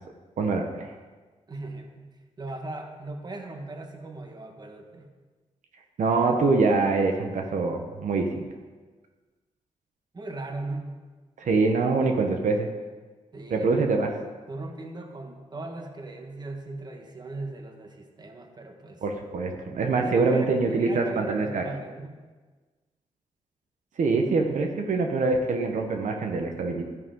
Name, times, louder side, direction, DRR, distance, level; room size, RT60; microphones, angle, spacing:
voice 1, 0.4-0.9 6.0-8.4 11.4-12.7 13.5-14.1 19.0-21.6 24.0-26.8, right 3 dB, 70° right, 3 dB, 1.2 m, -24 dB
voice 2, 1.5-5.1 10.1-11.0 13.3-13.7 14.5-19.0 20.0-22.2, right 2 dB, 35° right, 4 dB, 1.5 m, -38 dB
12.5 x 10.5 x 3.9 m, 1.4 s
cardioid pair, 85°, 13 cm